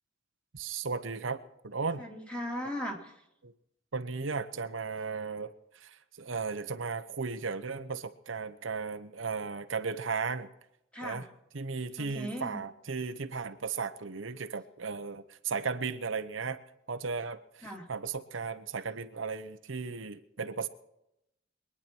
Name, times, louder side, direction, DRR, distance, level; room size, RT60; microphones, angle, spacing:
voice 1, 0.5-2.0 3.4-3.5 3.9-10.5 11.0-11.2 11.5-16.6 16.9-20.7, right 5 dB, 85° right, 9 dB, 0.9 m, -36 dB
voice 2, 2.0-3.2 10.9-11.3 12.0-12.6 17.6-17.9, equal, 5° left, 1 dB, 2.6 m, -38 dB
23.5 x 9.8 x 4.5 m, 0.82 s
head